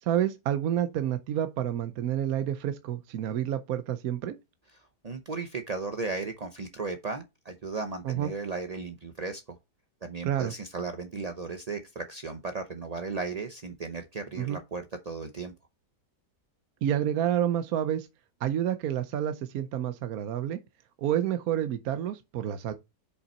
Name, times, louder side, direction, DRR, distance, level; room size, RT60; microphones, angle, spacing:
voice 1, 0.0-4.4 8.0-8.3 10.2-10.5 14.4-14.6 16.8-18.1 18.4-20.6 21.0-22.7, right 10 dB, 65° right, 1.0 m, -29 dB
voice 2, 5.0-9.6 10.0-15.5, right 4 dB, 50° right, 0.4 m, -35 dB
6.6 x 5.5 x 4.3 m
omnidirectional pair, 1.8 m